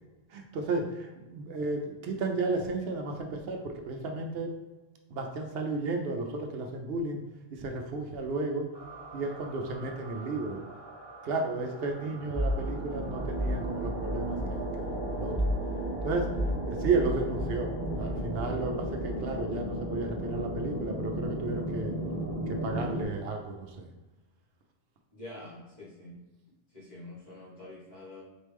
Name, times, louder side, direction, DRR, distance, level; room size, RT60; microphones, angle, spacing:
voice 1, 0.3-4.5 5.1-7.2 7.5-8.7 9.1-10.6 11.2-15.4 16.0-16.3 16.6-21.9 22.5-23.9, right 3 dB, 70° right, 3 dB, 0.8 m, -33 dB
sound 1, 8.7-23.0, equal, 25° right, 0.9 m, -34 dB
voice 2, 25.1-26.2 26.7-28.2, left 2 dB, 45° left, -8 dB, 1.8 m, -46 dB
4.4 x 3.1 x 3.4 m, 1.1 s
omnidirectional pair, 1.1 m